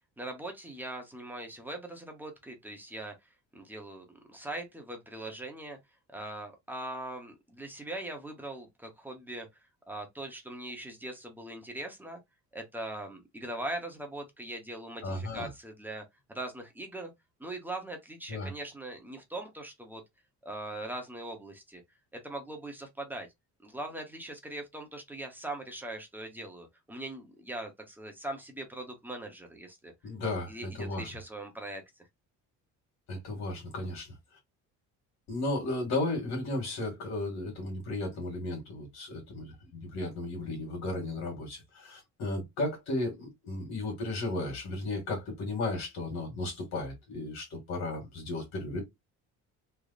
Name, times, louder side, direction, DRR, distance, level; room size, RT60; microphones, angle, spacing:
voice 1, 0.2-3.2 3.5-5.8 6.1-9.5 9.9-12.2 12.5-17.1 17.4-20.0 20.4-21.8 22.1-23.3 23.6-29.9 30.5-31.8, right 1 dB, 5° right, 0.7 m, -41 dB
voice 2, 15.0-15.5 18.3-18.5 30.0-31.1 33.1-34.1 35.3-48.8, left 2 dB, 60° left, 1.7 m, -34 dB
3.3 x 2.0 x 3.8 m
cardioid pair, 160°, 30 cm